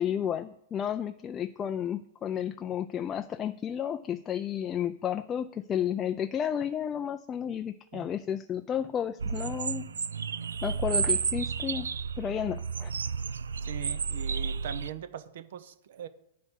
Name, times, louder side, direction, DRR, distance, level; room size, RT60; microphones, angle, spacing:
voice 1, 0.0-9.9 10.6-12.9, left 9 dB, 25° left, 8 dB, 0.3 m, -32 dB
sound 1, 9.2-14.9, right 6 dB, 90° right, 0.3 m, -31 dB
voice 2, 13.6-16.1, right 10 dB, 65° right, 13 dB, 0.8 m, -41 dB
9.3 x 5.4 x 6.2 m, 0.83 s
hypercardioid pair, 120°, 0 cm